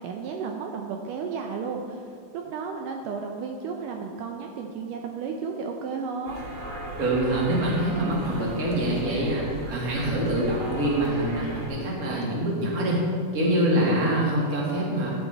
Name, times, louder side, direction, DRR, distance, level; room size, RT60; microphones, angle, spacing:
voice 1, 0.0-2.1 2.3-6.4, right 5 dB, 90° right, 2 dB, 1.8 m, -33 dB
sound 1, 6.3-11.7, right 1 dB, 55° right, 1.4 m, -37 dB
voice 2, 7.0-13.0 13.3-15.1, right 1 dB, 35° right, -4 dB, 1.6 m, -25 dB
11.5 x 9.7 x 3.4 m, 2.2 s
omnidirectional pair, 4.5 m